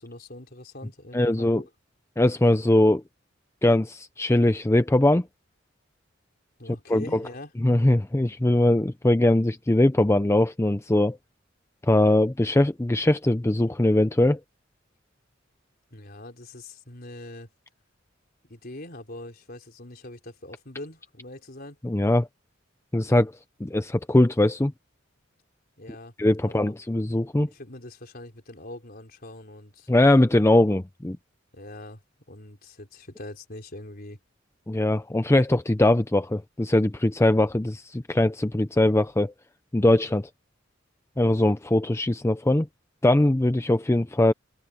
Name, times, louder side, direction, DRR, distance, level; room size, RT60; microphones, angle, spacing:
voice 1, 0.0-1.7 6.6-7.5 15.9-17.5 18.4-21.8 25.8-26.1 26.4-26.7 27.5-29.9 31.5-32.0 32.3-34.2, left 1 dB, 50° left, 4.0 m, -42 dB
voice 2, 1.1-1.6 2.2-3.0 3.6-5.3 6.9-7.2 7.6-11.2 11.8-14.4 21.8-22.3 22.9-23.3 23.6-24.7 26.2-27.5 29.9-31.2 34.7-39.3 39.7-40.3 41.2-42.7 43.0-44.3, left 1 dB, 15° left, 0.5 m, -21 dB
head